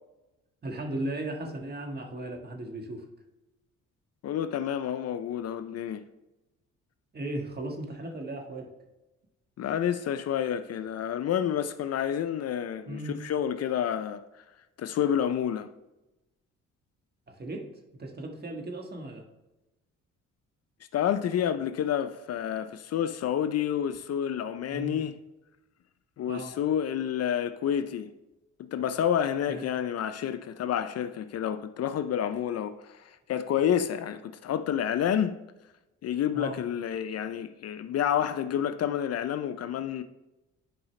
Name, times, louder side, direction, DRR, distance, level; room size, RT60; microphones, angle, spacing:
voice 1, 0.6-3.0 7.1-8.7 12.9-13.2 17.3-17.7 18.0-19.2 24.7-25.0 26.3-26.5 29.5-29.6 36.3-36.6, right 1 dB, 35° right, 1.5 m, -36 dB
voice 2, 4.2-6.0 9.6-14.2 14.8-15.7 20.9-25.2 26.2-28.1 28.7-35.4 36.0-40.0, left 9 dB, 55° left, 0.5 m, -29 dB
10.5 x 4.8 x 3.2 m
cardioid pair, 90°, 30 cm